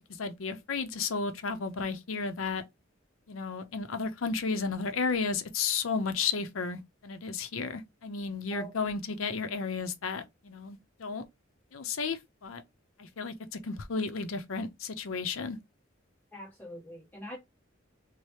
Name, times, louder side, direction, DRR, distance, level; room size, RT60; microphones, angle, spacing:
voice 1, 0.2-2.6 3.3-11.2 11.7-12.6 13.0-15.6, left 5 dB, 90° left, 0.6 m, -33 dB
voice 2, 16.3-17.4, right 1 dB, 10° left, 0.4 m, -43 dB
3.2 x 2.0 x 4.2 m
head